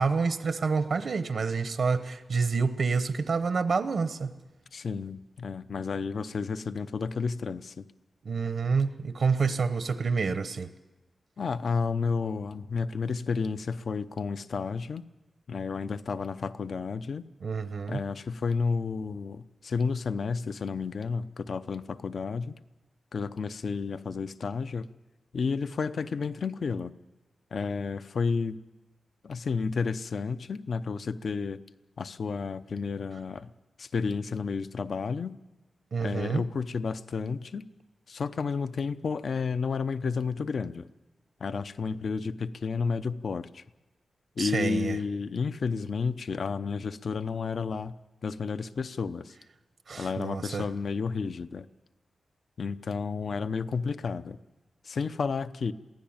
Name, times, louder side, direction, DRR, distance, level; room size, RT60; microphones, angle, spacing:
voice 1, 0.0-4.3 8.2-10.7 17.4-18.0 35.9-36.4 44.4-45.0 49.9-50.7, right 5 dB, 65° right, 11 dB, 1.0 m, -28 dB
voice 2, 4.7-7.8 11.4-15.1 15.5-17.3 17.9-22.6 23.1-24.9 25.3-26.9 27.5-28.6 29.2-31.6 32.0-33.5 33.8-35.4 36.0-37.6 38.1-40.9 41.4-43.6 44.4-47.9 48.2-49.3 50.0-51.7 52.6-54.4 54.8-55.7, left 5 dB, 60° left, 12 dB, 0.7 m, -31 dB
22.5 x 16.0 x 8.8 m, 1.1 s
wide cardioid pair, 135°, 0 cm